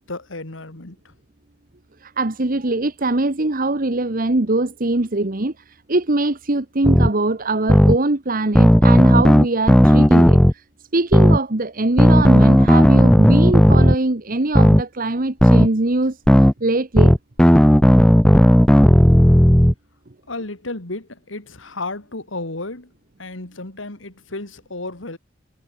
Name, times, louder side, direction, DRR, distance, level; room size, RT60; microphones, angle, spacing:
voice 1, 0.1-1.0 20.3-22.9 23.2-25.2, left 2 dB, 85° left, 2.9 m, -32 dB
voice 2, 2.0-10.6 10.9-17.1, right 2 dB, 45° right, 1.3 m, -22 dB
sound 1, 6.8-7.1 7.7-8.0 8.6-10.5 11.1-11.4 12.0-14.0 14.5-14.8 15.4-15.7 16.3-16.5 17.0-19.7, equal, 5° left, 0.6 m, -12 dB
head